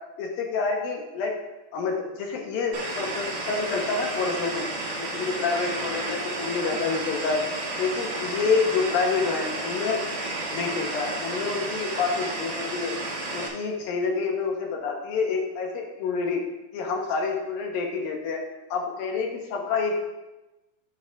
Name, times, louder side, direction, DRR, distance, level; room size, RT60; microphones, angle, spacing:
voice 1, 0.2-1.3 1.7-4.7 5.0-7.4 7.7-10.0 10.5-12.9 13.3-16.4 16.7-18.4 18.7-19.9, left 4 dB, 75° left, 1 dB, 2.4 m, -28 dB
sound 1, 2.7-13.5, right 2 dB, 55° right, 1.4 m, -32 dB
9.2 x 8.7 x 2.4 m, 1.0 s
omnidirectional pair, 4.6 m